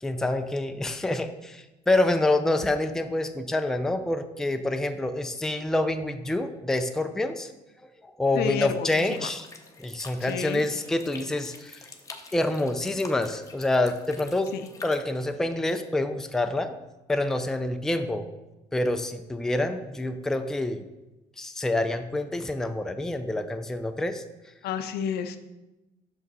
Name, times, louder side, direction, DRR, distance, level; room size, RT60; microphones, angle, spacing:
voice 1, 0.0-7.5 8.0-9.5 9.8-11.8 12.3-14.5 14.8-16.8 17.1-18.3 18.7-20.8 21.4-24.2, left 2 dB, 5° left, 7 dB, 0.4 m, -27 dB
voice 2, 8.3-9.3 10.2-10.6 14.5-14.7 24.6-25.4, left 8 dB, 75° left, 10 dB, 0.5 m, -30 dB
sound 1, 9.0-15.0, left 3 dB, 20° left, 0.7 m, -46 dB
6.2 x 5.1 x 4.0 m, 1.0 s
cardioid pair, 110°, 17 cm